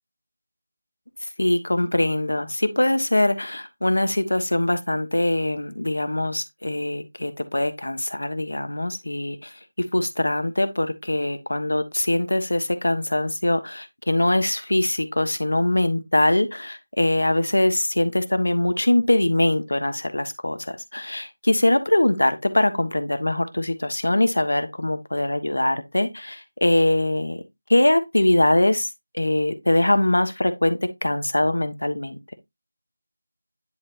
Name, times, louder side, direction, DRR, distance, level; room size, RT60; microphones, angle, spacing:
voice 1, 1.4-9.4 9.9-27.4 27.7-28.9 29.1-32.2, left 1 dB, 75° left, 1.4 m, -22 dB
10.5 x 4.4 x 2.6 m
figure-of-eight pair, 165°, 0 cm